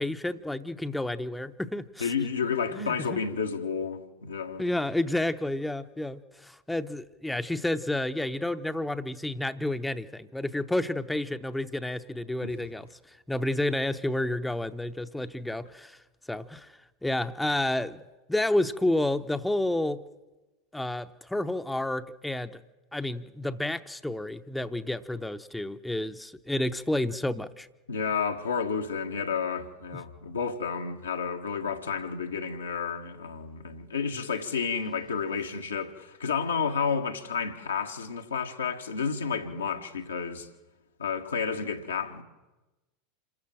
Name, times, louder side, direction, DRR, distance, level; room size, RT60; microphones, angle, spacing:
voice 1, 0.0-2.1 2.7-3.2 4.6-12.9 13.3-16.0 16.3-16.7 17.0-18.0 18.3-20.0 20.7-22.6 22.9-27.7 29.9-30.0, left 1 dB, 5° left, 0.8 m, -30 dB
voice 2, 2.0-4.6 12.4-12.5 27.9-40.5 41.0-42.2, left 6 dB, 85° left, 1.5 m, -31 dB
27.0 x 13.5 x 7.7 m
figure-of-eight pair, 85°, 0 cm